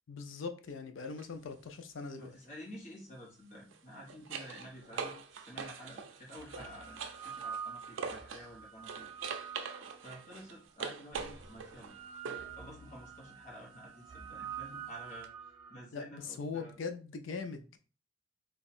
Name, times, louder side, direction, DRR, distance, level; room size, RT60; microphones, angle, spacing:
voice 1, 0.1-2.3 15.9-17.8, left 4 dB, 75° left, 0.5 m, -41 dB
sound 1, 1.0-1.3 3.6-8.5 8.8-12.6 15.2-15.3, right 5 dB, 80° right, 0.4 m, -43 dB
voice 2, 2.2-9.1 10.0-11.9 12.3-16.7, equal, 40° left, 0.9 m, -50 dB
sound 2, 6.1-10.4 11.1-15.8, right 8 dB, 30° right, 0.6 m, -47 dB
2.7 x 2.3 x 4.1 m
head